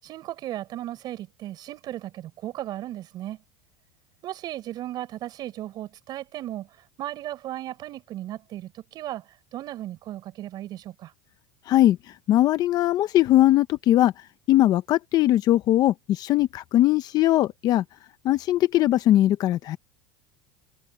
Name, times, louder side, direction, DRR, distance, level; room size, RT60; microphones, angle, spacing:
voice 1, 0.0-3.4 4.2-6.7 7.0-11.1, right 13 dB, 35° right, 7.1 m, -36 dB
voice 2, 11.7-14.1 14.5-17.8 18.2-19.8, left 14 dB, 35° left, 0.7 m, -20 dB
supercardioid pair, 160°, 11 cm